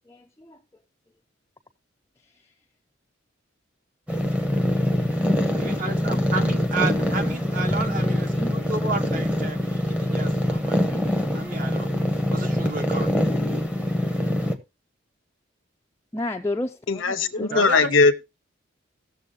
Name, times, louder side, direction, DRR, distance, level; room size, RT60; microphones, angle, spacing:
voice 1, 0.1-0.6 5.4-6.2 7.8-8.6 16.1-17.6, left 1 dB, 15° left, 0.4 m, -33 dB
sound 1, 4.1-14.6, left 1 dB, 5° right, 0.9 m, -24 dB
voice 2, 5.5-11.0 11.3-11.9 12.3-13.1 17.5-17.9, right 3 dB, 40° right, 1.0 m, -32 dB
voice 3, 16.9-18.2, left 4 dB, 85° left, 0.9 m, -20 dB
17.0 x 7.0 x 2.7 m
head